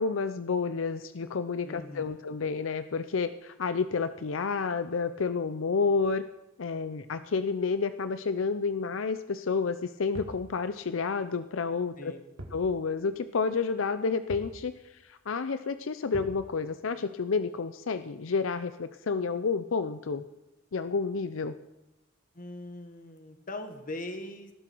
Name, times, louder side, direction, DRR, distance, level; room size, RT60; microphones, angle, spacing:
voice 1, 0.0-6.2 6.6-12.1 12.5-14.7 15.0-20.2 20.7-21.5, left 4 dB, 85° left, 11 dB, 0.6 m, -30 dB
voice 2, 1.6-2.2 12.0-12.2 22.3-24.5, left 1 dB, 45° left, 7 dB, 1.7 m, -40 dB
sound 1, 10.1-10.5 12.4-12.7 13.0-13.1 14.3-14.6 16.1-16.4, right 1 dB, 85° right, 2.1 m, -42 dB
18.5 x 12.0 x 4.6 m, 0.92 s
head